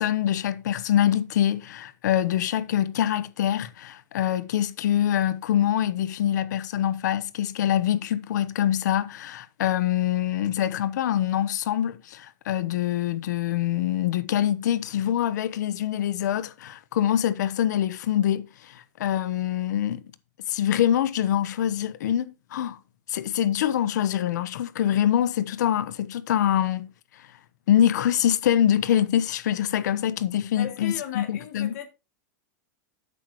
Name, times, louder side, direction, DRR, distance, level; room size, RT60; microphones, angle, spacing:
voice 1, 0.0-20.0 20.5-22.8 23.1-26.9 27.7-31.8, left 11 dB, 80° left, 1.1 m, -24 dB
voice 2, 30.6-31.9, left 11 dB, 65° left, 2.7 m, -36 dB
11.0 x 8.3 x 3.1 m
supercardioid pair, 170°, 9 cm